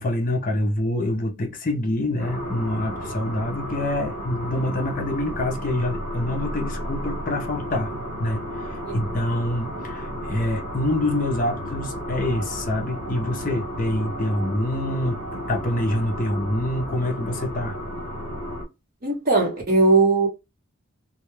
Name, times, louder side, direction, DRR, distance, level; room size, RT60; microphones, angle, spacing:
voice 1, 0.0-7.9 8.2-17.8, left 1 dB, 40° left, 0.5 m, -26 dB
sound 1, 2.2-18.6, equal, 80° right, 1.1 m, -33 dB
voice 2, 19.0-20.3, right 3 dB, 40° right, 0.9 m, -19 dB
2.2 x 2.1 x 3.0 m
head